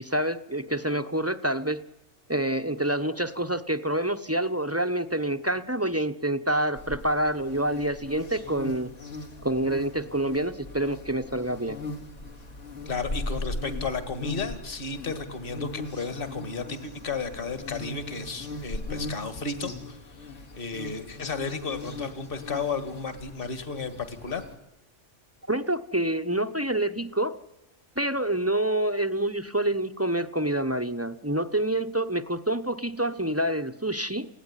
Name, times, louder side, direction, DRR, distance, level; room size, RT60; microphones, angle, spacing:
voice 1, 0.0-1.8 2.3-8.9 9.4-11.8 25.5-27.4 28.0-34.3, right 1 dB, 15° right, 9 dB, 0.8 m, -27 dB
sound 1, 6.7-24.6, left 2 dB, 75° left, 3.1 m, -39 dB
voice 2, 12.9-24.5, left 4 dB, 45° left, 11 dB, 2.0 m, -33 dB
29.5 x 17.0 x 9.9 m, 0.98 s
omnidirectional pair, 1.3 m